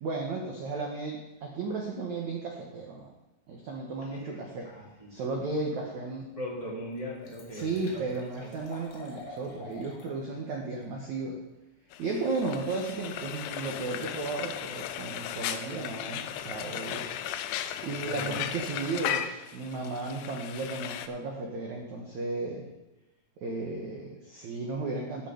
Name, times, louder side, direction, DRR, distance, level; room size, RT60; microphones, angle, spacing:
voice 1, 0.0-3.1 3.5-4.7 5.1-6.3 7.5-11.4 12.0-17.1 17.8-22.7 23.4-25.3, right 3 dB, 90° right, -1 dB, 1.6 m, -34 dB
voice 2, 4.6-5.1 6.3-8.0 8.4-8.5 18.0-18.4, equal, 15° right, -7 dB, 1.4 m, -39 dB
Liquid, 6.1-6.2 6.6-6.7 6.9-10.2 10.5-10.6, left 2 dB, 65° left, 3.7 m, -47 dB
Frying (food), 11.9-21.1, left 11 dB, 90° left, 2.4 m, -36 dB
15.0 x 5.7 x 5.1 m, 0.96 s
omnidirectional pair, 5.3 m